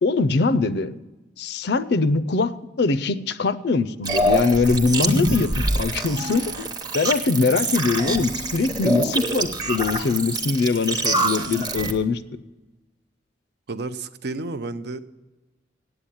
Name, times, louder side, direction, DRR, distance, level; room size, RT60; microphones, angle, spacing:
voice 1, 0.0-0.9 1.4-5.5 5.7-6.7 6.9-12.2, left 4 dB, 60° left, 14 dB, 0.5 m, -22 dB
sound 1, 4.1-11.9, right 1 dB, 20° right, 0.8 m, -25 dB
voice 2, 13.7-15.0, right 3 dB, 60° right, 11 dB, 0.5 m, -31 dB
8.8 x 8.3 x 8.5 m, 1.1 s
head